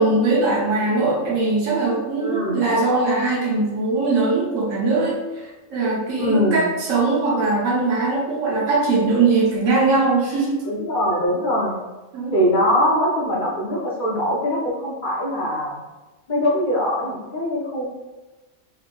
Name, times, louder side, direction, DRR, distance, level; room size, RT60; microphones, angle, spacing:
voice 1, 0.0-10.6 12.1-12.3, right 3 dB, 90° right, -3 dB, 1.2 m, -21 dB
voice 2, 2.2-2.6 6.2-6.6 10.6-11.8 12.3-15.8 16.3-17.9, equal, 50° left, -5 dB, 0.6 m, -22 dB
3.4 x 2.4 x 2.2 m, 1.1 s
omnidirectional pair, 1.3 m